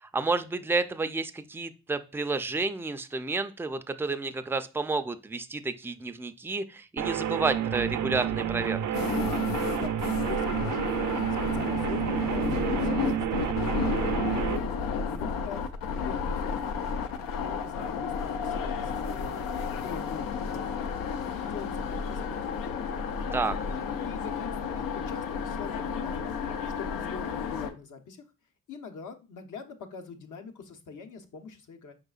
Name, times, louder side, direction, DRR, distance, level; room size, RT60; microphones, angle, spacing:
voice 1, 0.0-8.8 23.3-23.6, right 3 dB, 5° right, 11 dB, 0.4 m, -30 dB
sound 1, 7.0-14.6, right 10 dB, 60° right, 0.5 m, -30 dB
sound 2, 8.9-27.7, left 6 dB, 90° left, 0.5 m, -32 dB
voice 2, 9.7-13.5 13.8-14.8 15.1-16.8 17.4-19.5 19.8-20.9 21.3-22.9 24.0-26.4 26.8-28.2 28.7-31.9, left 5 dB, 65° left, 5 dB, 0.8 m, -43 dB
4.9 x 3.8 x 2.3 m, 0.30 s
supercardioid pair, 45°, 33 cm